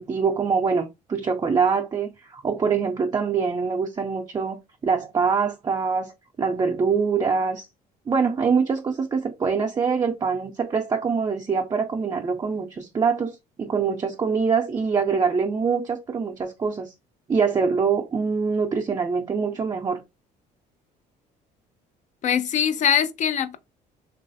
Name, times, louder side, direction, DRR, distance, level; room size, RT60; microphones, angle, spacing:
voice 1, 0.0-6.1 6.4-7.7 8.1-16.9 17.3-20.0, right 5 dB, 25° right, 0.4 m, -24 dB
voice 2, 22.2-23.6, left 8 dB, 45° left, 0.4 m, -22 dB
3.1 x 2.3 x 2.5 m
cardioid pair, 110°, 17 cm